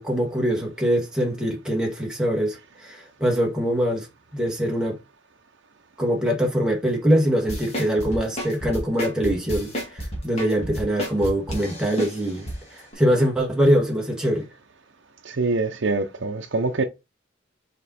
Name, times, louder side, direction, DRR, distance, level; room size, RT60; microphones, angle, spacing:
voice 1, 0.0-4.1 4.3-5.0 6.0-14.5, equal, 5° right, 1.7 m, -23 dB
sound 1, 7.5-12.6 12.9-13.0, equal, 30° left, 2.2 m, -31 dB
voice 2, 15.2-16.8, right 3 dB, 70° right, 0.7 m, -24 dB
5.3 x 4.4 x 4.3 m
head